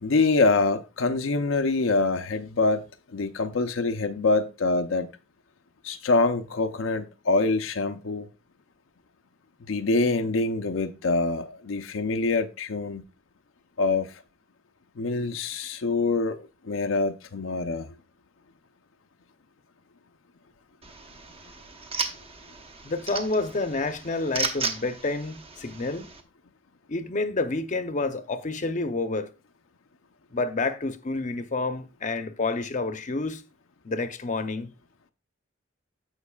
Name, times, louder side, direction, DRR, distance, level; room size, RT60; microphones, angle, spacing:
voice 1, 0.0-5.1 5.8-8.3 9.6-13.0 13.8-14.2 15.0-17.9, left 3 dB, 85° left, 0.6 m, -25 dB
sound 1, 20.8-26.2, right 4 dB, 30° right, 0.9 m, -35 dB
voice 2, 22.8-26.1 26.9-29.3 30.3-33.4 33.8-34.7, left 3 dB, 40° left, 0.7 m, -29 dB
15.5 x 5.3 x 2.3 m
head